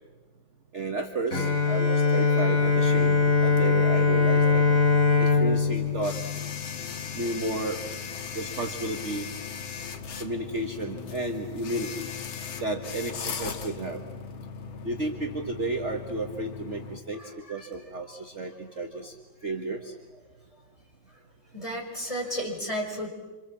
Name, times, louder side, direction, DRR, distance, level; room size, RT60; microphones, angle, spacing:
voice 1, 0.7-4.6 5.2-6.2 7.1-7.8 8.3-9.3 10.2-12.1 12.6-14.0 14.8-17.2 17.5-19.1 19.4-19.9, right 2 dB, 40° right, 3 dB, 1.7 m, -32 dB
Bowed string instrument, 1.3-7.2, left 4 dB, 40° left, 4.0 m, -22 dB
sound 1, 2.6-17.0, left 6 dB, 90° left, 2.3 m, -39 dB
voice 2, 17.1-17.7 18.1-18.2 21.5-23.1, equal, 15° left, 0 dB, 5.6 m, -33 dB
27.0 x 27.0 x 7.5 m, 1.3 s
omnidirectional pair, 2.2 m